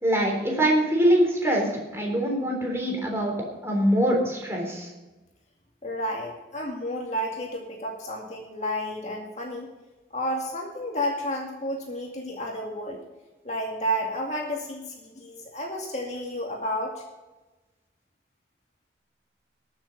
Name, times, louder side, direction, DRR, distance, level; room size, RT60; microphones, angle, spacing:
voice 1, 0.0-3.3 3.6-4.9, equal, 15° right, 0 dB, 3.6 m, -23 dB
voice 2, 5.8-9.7 10.1-13.0 13.4-17.0, equal, 40° left, 0 dB, 2.3 m, -31 dB
20.5 x 7.3 x 5.3 m, 1.1 s
head